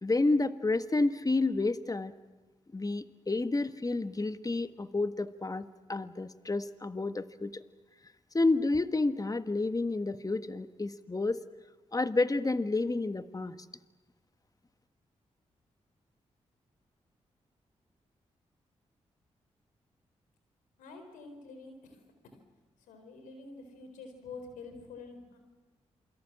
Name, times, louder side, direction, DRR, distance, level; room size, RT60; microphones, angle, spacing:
voice 1, 0.0-2.1 2.7-7.6 8.3-11.4 11.9-13.6, left 2 dB, 25° left, 11 dB, 1.5 m, -30 dB
voice 2, 20.8-22.3 22.9-25.4, left 3 dB, 90° left, 6 dB, 4.3 m, -47 dB
28.0 x 23.0 x 7.5 m, 1.2 s
supercardioid pair, 40°, 13 cm